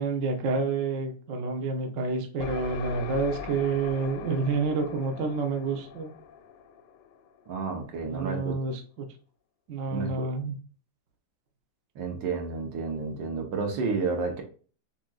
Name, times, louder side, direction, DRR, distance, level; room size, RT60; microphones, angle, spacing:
voice 1, 0.0-6.1 8.1-9.1 9.7-10.5, right 4 dB, 55° right, 1.0 m, -29 dB
sound 1, 2.4-8.0, left 8 dB, 75° left, 1.1 m, -41 dB
voice 2, 7.5-8.6 9.9-10.3 11.9-14.4, right 4 dB, 75° right, 1.7 m, -31 dB
7.4 x 2.9 x 2.3 m
omnidirectional pair, 2.1 m